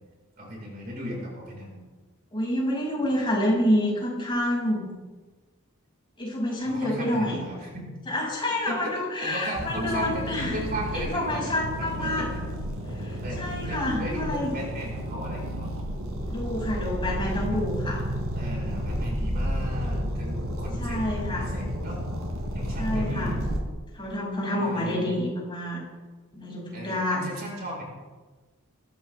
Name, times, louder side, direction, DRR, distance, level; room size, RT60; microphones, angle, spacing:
voice 1, 0.4-1.8 6.6-7.9 8.7-11.5 11.8-12.4 13.2-15.7 18.3-22.0 22.5-23.4 24.6-25.2 26.7-27.8, equal, 45° right, -2 dB, 5.0 m, -36 dB
voice 2, 2.3-4.8 6.2-7.4 8.1-10.6 11.1-12.3 12.9-14.5 16.3-18.0 20.8-21.5 22.8-23.3 23.9-25.8 26.3-27.3, left 1 dB, 25° left, -4 dB, 6.8 m, -28 dB
sound 1, 9.5-23.6, equal, 80° right, 3.7 m, -31 dB
21.5 x 15.0 x 3.6 m, 1.3 s
head